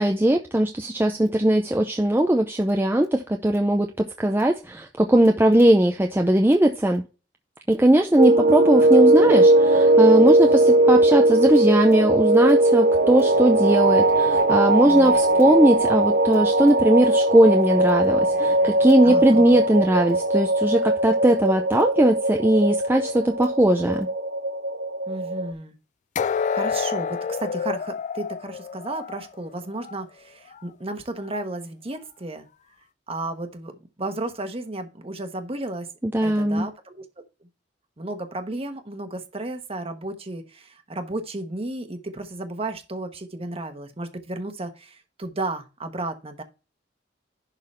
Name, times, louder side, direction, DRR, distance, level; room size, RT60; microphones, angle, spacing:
voice 1, 0.0-7.0 7.7-24.1 36.0-36.7, right 1 dB, 10° right, 0.6 m, -19 dB
sound 1, 8.2-25.5, right 2 dB, 60° right, 0.7 m, -19 dB
sound 2, 13.7-16.8 26.1-30.1 30.4-30.6 31.2-31.3, left 6 dB, 40° left, 0.3 m, -31 dB
voice 2, 19.0-19.6 25.1-25.7 26.5-32.5 33.1-33.7 34.0-35.9 36.2-37.0 38.0-46.4, right 2 dB, 30° right, 1.2 m, -33 dB
11.0 x 4.0 x 4.2 m
head